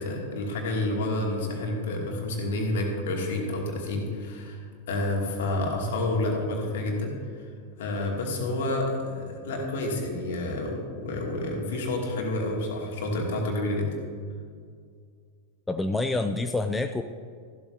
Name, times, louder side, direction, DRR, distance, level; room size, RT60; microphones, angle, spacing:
voice 1, 0.0-4.6 4.9-7.1 7.8-13.9, left 2 dB, 55° left, 0 dB, 2.4 m, -29 dB
voice 2, 15.7-17.0, left 2 dB, 10° left, 8 dB, 0.4 m, -27 dB
14.5 x 12.0 x 2.7 m, 2.1 s
figure-of-eight pair, 90°, 0 cm